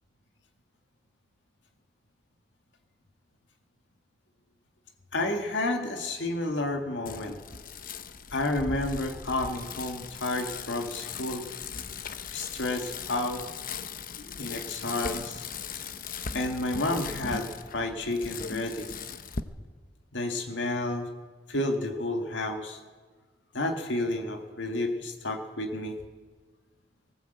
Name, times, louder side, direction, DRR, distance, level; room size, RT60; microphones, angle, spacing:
voice 1, 5.1-7.4 8.3-11.5 12.3-13.4 14.2-15.5 16.3-18.9 20.1-21.1 21.5-22.8 23.5-26.0, left 2 dB, 90° left, 4 dB, 1.8 m, -31 dB
Bicycle, 7.1-19.4, left 5 dB, 50° left, 0.9 m, -39 dB
19.5 x 17.0 x 8.0 m, 1.4 s
head